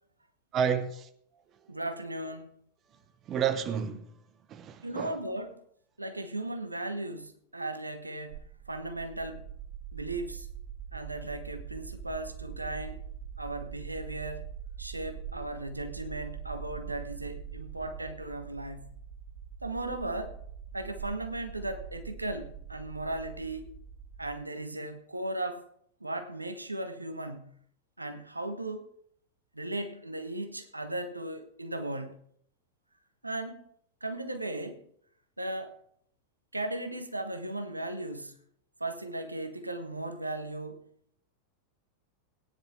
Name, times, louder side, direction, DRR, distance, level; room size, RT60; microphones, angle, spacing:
voice 1, 0.5-1.1 3.3-4.1 4.5-5.2, right 7 dB, 30° right, 1.0 m, -30 dB
voice 2, 1.7-2.5 4.8-5.6 6.0-9.4 9.9-10.5 10.9-13.0 13.4-14.5 14.8-18.9 19.6-20.4 20.7-23.7 24.2-25.7 26.0-27.6 28.0-28.9 29.5-32.2 33.2-33.6 34.0-34.9 35.4-35.8 36.5-38.4 38.8-40.8, right 1 dB, 85° right, 1.1 m, -36 dB
sound 1, 8.3-24.4, right 8 dB, 55° right, 1.2 m, -43 dB
19.0 x 9.9 x 3.6 m
figure-of-eight pair, 90°, 0 cm